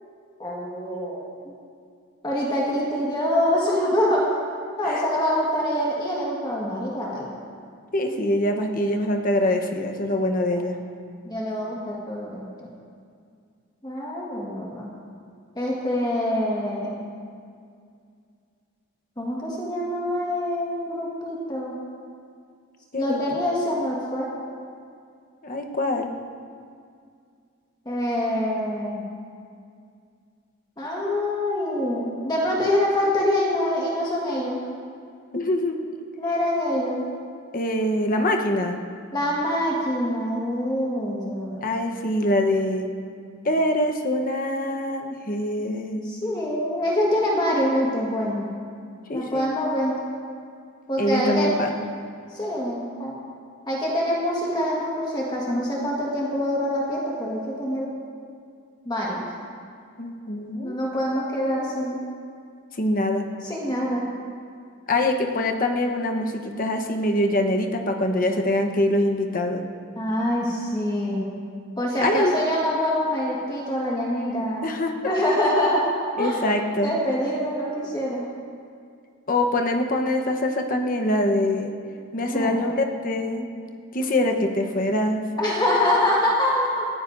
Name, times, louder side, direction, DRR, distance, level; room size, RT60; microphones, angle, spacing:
voice 1, 0.4-1.2 2.2-4.4 4.8-7.3 10.1-10.2 11.2-12.7 13.8-14.9 15.5-17.0 19.2-21.8 23.0-24.3 27.8-29.1 30.8-34.6 36.2-37.0 39.1-41.6 46.0-48.5 49.1-50.0 50.9-51.5 52.3-53.2 53.7-57.9 58.8-59.2 60.6-62.0 63.4-64.1 70.0-71.2 71.8-74.7 75.0-75.8 76.2-76.4 76.8-78.3 82.3-82.6 85.4-86.8, left 1 dB, 20° left, -4 dB, 1.6 m, -25 dB
voice 2, 7.9-10.8 22.9-23.2 25.4-26.1 35.3-35.8 37.5-38.8 41.6-42.9 43.4-46.1 49.1-49.5 51.0-51.7 60.0-60.8 62.7-63.3 64.9-69.6 72.0-72.3 74.6-75.1 76.2-76.9 79.3-81.7 82.1-83.5 83.9-85.2, left 1 dB, 40° left, 4 dB, 1.0 m, -24 dB
19.0 x 14.0 x 2.6 m, 2.3 s
head